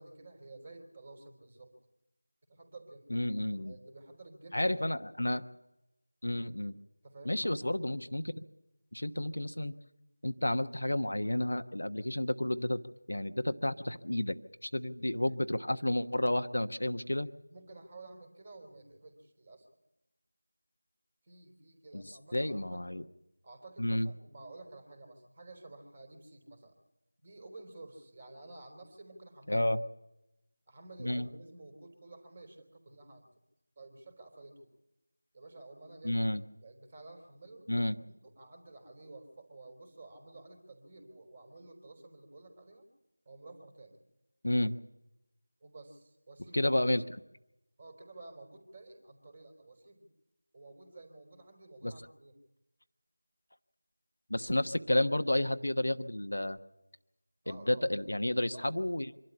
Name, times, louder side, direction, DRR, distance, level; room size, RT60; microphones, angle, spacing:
voice 1, 0.0-1.7 2.5-3.2 3.6-4.8 5.2-5.3 7.0-7.5 17.5-19.7 21.2-22.8 23.4-26.7 27.2-29.6 30.7-33.2 33.8-34.7 35.3-37.7 38.2-42.9 43.3-44.0 45.6-46.7 47.8-50.1 50.5-52.4 57.4-57.9 58.5-58.9, right 2 dB, 25° right, 6 dB, 3.6 m, -52 dB
voice 2, 3.1-3.7 4.5-5.4 6.2-6.8 7.2-8.4 8.9-9.7 10.2-12.8 13.1-14.4 14.6-17.3 21.9-23.0 23.8-24.1 29.5-29.8 31.0-31.3 36.0-36.4 37.7-38.0 44.4-44.8 46.5-47.2 51.8-51.9 54.3-56.6 57.5-59.1, left 1 dB, 70° left, 8 dB, 1.1 m, -31 dB
25.5 x 12.0 x 9.9 m, 0.92 s
figure-of-eight pair, 170°, 0 cm